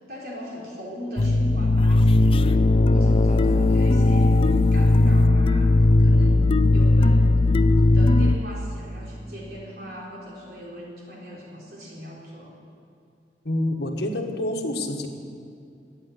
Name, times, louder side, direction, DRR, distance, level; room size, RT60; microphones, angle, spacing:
voice 1, 0.1-2.6 2.9-7.4 7.9-12.5, equal, 60° right, -4 dB, 3.8 m, -39 dB
sound 1, 1.2-8.4, left 2 dB, 30° left, 0.4 m, -18 dB
voice 2, 13.4-15.1, left 1 dB, 65° left, 2 dB, 1.7 m, -27 dB
13.5 x 8.6 x 9.9 m, 2.4 s
head